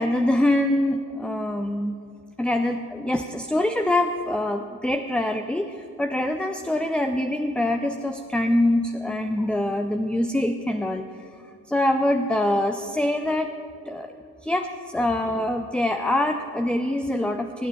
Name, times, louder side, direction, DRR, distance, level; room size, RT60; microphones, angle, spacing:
voice 1, 0.0-2.0 2.4-11.3 11.7-13.5 13.9-14.2 14.4-17.7, left 1 dB, ahead, 6 dB, 0.4 m, -24 dB
26.5 x 9.5 x 2.7 m, 2.3 s
hypercardioid pair, 45°, 48 cm